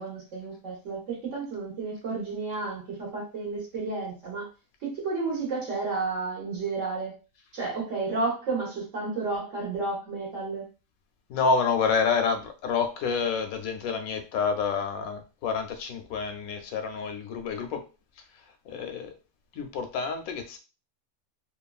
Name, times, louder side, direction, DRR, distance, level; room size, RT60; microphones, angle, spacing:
voice 1, 0.0-4.5 4.8-7.2 7.5-10.7, right 3 dB, 65° right, 1.3 m, -32 dB
voice 2, 11.3-17.8 18.7-19.1 19.5-20.6, left 5 dB, 85° left, 1.0 m, -28 dB
3.0 x 2.2 x 2.3 m
omnidirectional pair, 1.5 m